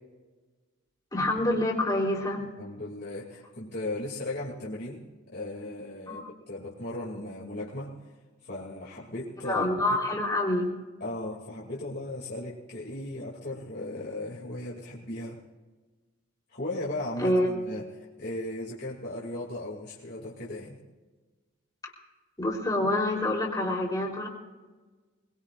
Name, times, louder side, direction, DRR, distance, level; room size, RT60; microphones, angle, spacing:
voice 1, 1.1-2.5 6.1-6.3 9.4-10.7 17.2-17.5 21.8-21.9 22.4-24.3, left 1 dB, 20° left, -3 dB, 3.5 m, -27 dB
voice 2, 2.6-5.0 5.3-8.0 8.4-9.7 11.0-15.4 16.5-20.8, left 1 dB, 50° left, -6 dB, 2.5 m, -37 dB
23.0 x 20.5 x 2.5 m, 1.3 s
head